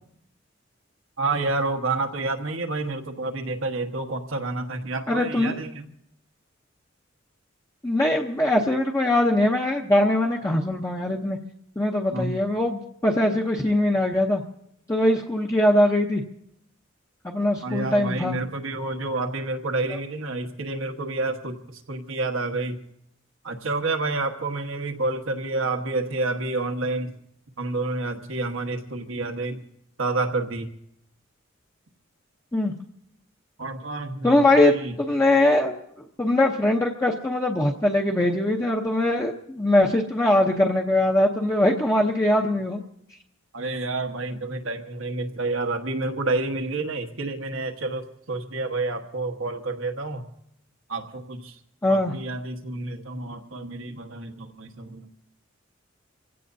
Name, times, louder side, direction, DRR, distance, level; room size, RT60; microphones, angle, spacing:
voice 1, 1.2-5.9 12.1-12.3 17.6-22.8 23.4-27.1 27.6-29.6 30.0-30.7 33.6-34.9 43.5-50.2 50.9-51.5 51.9-55.1, right 2 dB, 85° right, 4 dB, 1.4 m, -29 dB
voice 2, 5.1-5.6 7.8-11.4 11.8-14.4 14.9-16.2 17.2-18.4 32.5-32.7 34.2-35.8 36.2-42.8 51.8-52.1, left 1 dB, 15° left, -1 dB, 0.8 m, -21 dB
27.0 x 16.5 x 2.7 m, 0.74 s
head